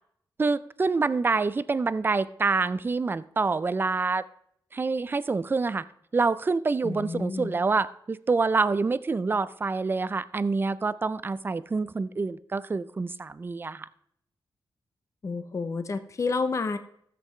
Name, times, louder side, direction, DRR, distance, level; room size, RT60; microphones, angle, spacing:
voice 1, 0.4-4.2 4.7-5.9 6.1-13.9, right 4 dB, 25° right, 17 dB, 0.3 m, -26 dB
voice 2, 6.8-7.5 15.2-16.8, left 4 dB, 35° left, 9 dB, 0.6 m, -30 dB
14.0 x 7.6 x 3.1 m, 0.69 s
wide cardioid pair, 135°, 8 cm